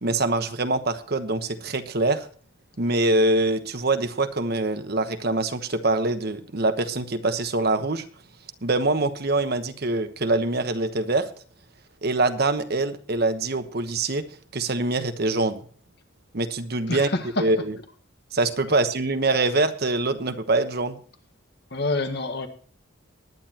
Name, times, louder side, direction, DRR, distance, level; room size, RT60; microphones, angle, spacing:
voice 1, 0.0-2.3 2.8-8.0 8.6-11.3 12.0-14.3 14.5-15.6 16.3-17.1 17.4-17.8 18.3-21.0, right 2 dB, 50° right, 1.1 m, -24 dB
voice 2, 21.7-22.5, left 3 dB, 55° left, 1.7 m, -27 dB
20.0 x 10.0 x 2.9 m
head